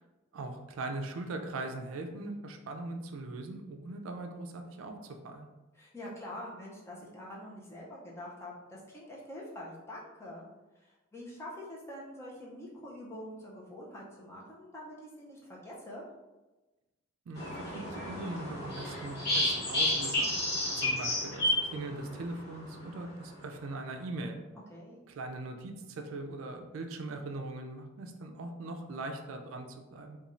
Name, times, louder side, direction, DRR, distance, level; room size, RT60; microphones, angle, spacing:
voice 1, 0.3-5.5 17.3-20.4 20.8-24.4 25.1-30.2, right 2 dB, 80° right, 4 dB, 0.4 m, -40 dB
voice 2, 5.7-10.5 10.8-16.1 24.7-25.0, left 1 dB, 15° left, -5 dB, 0.5 m, -45 dB
sound 1, 17.4-22.4, left 1 dB, 50° left, 0.8 m, -31 dB
3.0 x 2.3 x 2.5 m, 1.1 s
head